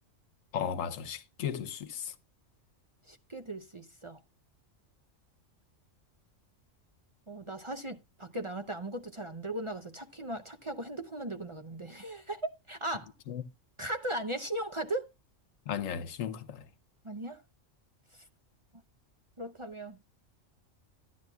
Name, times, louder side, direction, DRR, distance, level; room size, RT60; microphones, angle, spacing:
voice 1, 0.5-2.1 13.3-13.4 15.7-16.6, left 8 dB, 90° left, 1.2 m, -35 dB
voice 2, 3.1-4.2 7.3-13.1 13.8-15.1 17.0-17.4 18.1-18.2 19.4-20.0, right 1 dB, 30° right, 0.6 m, -38 dB
13.5 x 10.5 x 2.2 m
omnidirectional pair, 1.3 m